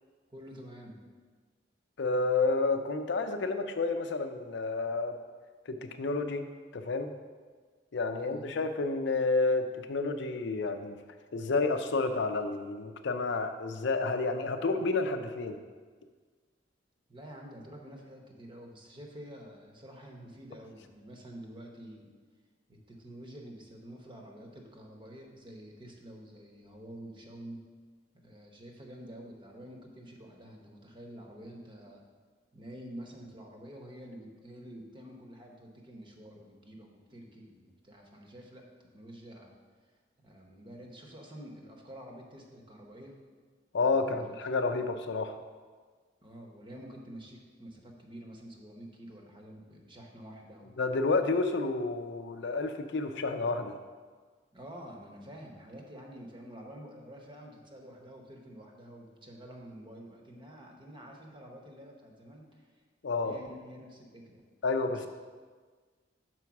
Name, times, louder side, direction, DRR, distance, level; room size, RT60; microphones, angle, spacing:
voice 1, 0.3-1.0 8.2-8.6 17.1-22.1 22.7-27.6 28.2-32.0 32.5-38.7 38.9-39.5 40.2-43.2 43.7-44.2 46.2-50.7 54.5-62.7 63.2-64.4 64.9-65.1, equal, 25° right, 1 dB, 0.9 m, -48 dB
voice 2, 2.0-5.2 5.7-6.5 6.7-7.1 7.9-11.0 11.3-15.6 43.7-45.4 50.8-53.7 63.0-63.4 64.6-65.1, left 3 dB, 70° left, 8 dB, 0.5 m, -30 dB
6.2 x 4.6 x 5.8 m, 1.5 s
head